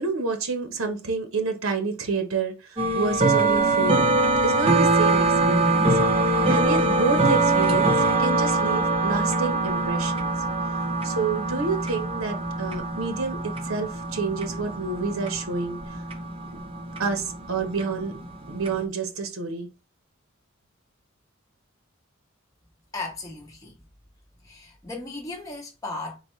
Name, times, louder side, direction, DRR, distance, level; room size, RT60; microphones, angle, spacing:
voice 1, 0.0-4.2 4.4-7.9 8.2-10.3 11.0-16.0 17.0-18.1 18.5-19.7, right 4 dB, 85° right, 1.0 m, -29 dB
sound 1, 2.8-18.8, right 2 dB, 25° right, 0.6 m, -23 dB
voice 2, 22.9-23.7 24.4-26.2, left 3 dB, 15° left, 0.7 m, -36 dB
4.2 x 4.0 x 3.1 m
head